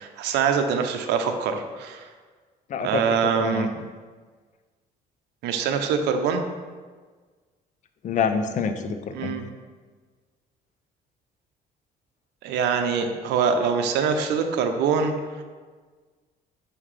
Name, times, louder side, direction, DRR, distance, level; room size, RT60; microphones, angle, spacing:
voice 1, 0.0-2.1 2.8-3.7 5.4-6.4 9.1-9.4 12.4-15.1, right 6 dB, 85° right, 6 dB, 0.6 m, -24 dB
voice 2, 2.7-3.0 3.4-3.8 8.0-9.4, left 6 dB, 45° left, 8 dB, 0.5 m, -27 dB
5.7 x 5.3 x 3.2 m, 1.5 s
cardioid pair, 110°, 17 cm